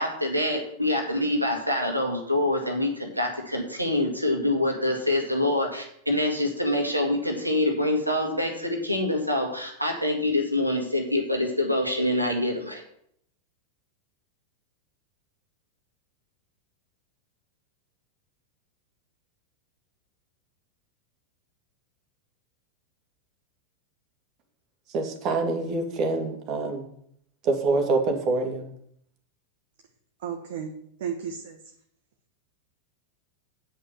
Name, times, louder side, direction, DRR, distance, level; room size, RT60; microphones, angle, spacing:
voice 1, 0.0-12.8, left 1 dB, 90° right, 2 dB, 1.9 m, -25 dB
voice 2, 24.9-26.8 27.4-28.7, right 3 dB, 35° right, 3 dB, 2.2 m, -26 dB
voice 3, 30.2-30.7 31.0-31.6, right 7 dB, 55° right, 3 dB, 1.1 m, -33 dB
8.8 x 5.5 x 7.2 m, 0.69 s
figure-of-eight pair, 90°, 0 cm